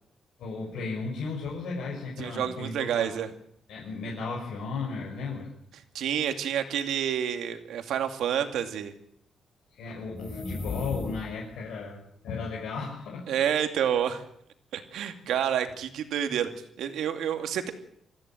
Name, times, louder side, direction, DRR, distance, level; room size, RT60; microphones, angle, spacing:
voice 1, 0.4-3.1 3.7-5.5 9.7-12.0 12.2-13.4, left 4 dB, 80° left, -3 dB, 5.9 m, -35 dB
voice 2, 2.2-3.3 5.9-8.9 13.3-14.2 14.7-16.5 16.8-17.7, right 9 dB, 85° right, 7 dB, 2.5 m, -28 dB
sound 1, 10.1-11.6, left 3 dB, 30° left, 4.9 m, -36 dB
25.0 x 15.0 x 9.1 m, 0.71 s
cardioid pair, 160°, 0 cm